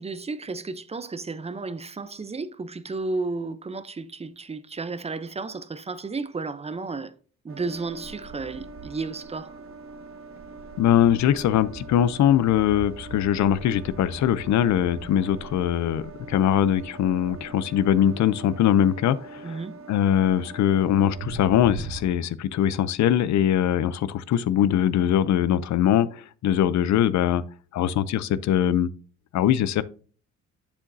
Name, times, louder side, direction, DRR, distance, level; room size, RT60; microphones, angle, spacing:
voice 1, 0.0-7.1 7.4-9.6 19.4-19.8, right 3 dB, 20° right, 0.6 m, -33 dB
sound 1, 7.5-22.1, right 3 dB, 45° right, 1.2 m, -41 dB
voice 2, 10.8-19.6 19.9-27.4 27.7-28.9 29.3-29.8, left 10 dB, 70° left, 0.6 m, -22 dB
7.4 x 7.0 x 2.7 m
cardioid pair, 90°, 30 cm